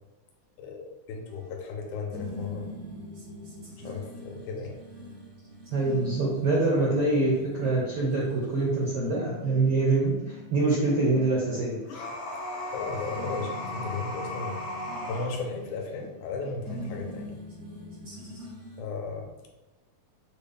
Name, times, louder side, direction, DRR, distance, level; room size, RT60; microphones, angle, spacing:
voice 1, 0.6-2.7 3.8-4.8 12.7-14.6 15.0-17.4 18.8-19.5, left 4 dB, 80° left, 2 dB, 2.1 m, -35 dB
sound 1, 1.3-18.8, left 1 dB, 50° right, 1.0 m, -44 dB
voice 2, 5.7-11.8, right 2 dB, 70° right, -5 dB, 1.4 m, -25 dB
sound 2, 11.9-15.3, left 1 dB, 65° left, 2.1 m, -36 dB
6.5 x 2.3 x 3.4 m, 1.1 s
omnidirectional pair, 3.5 m